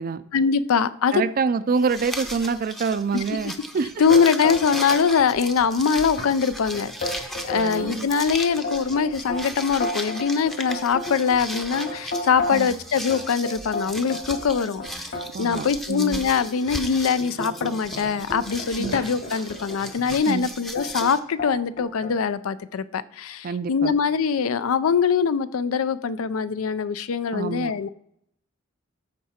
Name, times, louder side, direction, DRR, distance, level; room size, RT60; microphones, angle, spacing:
voice 1, 0.3-1.2 4.0-15.1 15.4-27.9, left 6 dB, 80° left, 15 dB, 0.4 m, -23 dB
voice 2, 1.1-3.9 7.5-8.1 12.5-12.7 15.3-16.2 18.8-19.0 20.3-20.5 23.4-23.9 27.3-27.7, right 5 dB, 45° right, 14 dB, 0.4 m, -26 dB
sound 1, 1.8-21.2, equal, ahead, 0.6 m, -36 dB
sound 2, 4.1-5.0 5.3-5.8 6.2-6.3 6.7-7.9 8.4-12.7 13.1-15.7 16.3-16.4 16.9-20.0 20.8-21.1 21.4-22.2, left 2 dB, 60° left, 2.4 m, -32 dB
14.0 x 4.7 x 4.3 m, 0.72 s
head